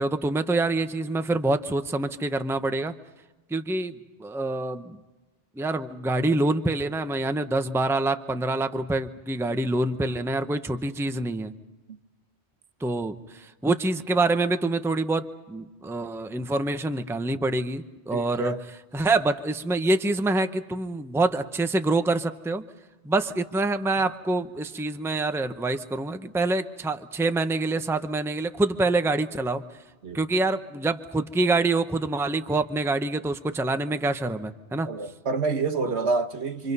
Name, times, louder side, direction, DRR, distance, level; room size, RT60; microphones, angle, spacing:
voice 1, 0.0-2.9 3.5-5.0 5.6-11.5 12.8-18.5 18.9-22.6 23.0-29.6 30.1-34.9 35.9-36.1, right 2 dB, 5° right, 0.7 m, -26 dB
voice 2, 18.1-18.6 30.0-30.2 34.9-36.7, right 4 dB, 70° right, 1.4 m, -27 dB
27.0 x 25.5 x 5.5 m
omnidirectional pair, 1.2 m